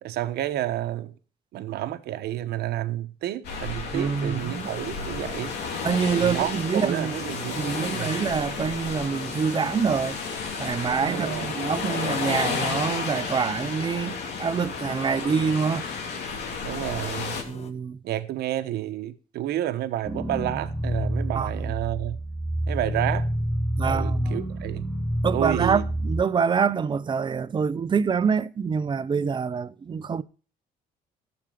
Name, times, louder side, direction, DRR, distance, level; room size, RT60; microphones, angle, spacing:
voice 1, 0.0-1.1 1.5-5.6 6.1-8.2 11.1-11.5 16.6-17.4 18.0-22.2 22.7-23.3 23.8-24.9 25.3-25.8, right 13 dB, 70° right, 1.1 m, -30 dB
sound 1, 3.4-17.4, left 5 dB, 80° left, 2.9 m, -32 dB
voice 2, 3.9-4.7 5.8-7.2 7.6-10.2 10.6-15.9 17.5-18.0 21.3-21.5 23.8-24.4 25.2-30.2, right 6 dB, 25° right, 0.7 m, -26 dB
sound 2, 4.4-17.7, left 5 dB, 40° left, 1.5 m, -44 dB
sound 3, 20.0-26.2, right 1 dB, 10° right, 1.4 m, -28 dB
13.5 x 7.2 x 4.9 m
cardioid pair, 110°, 17 cm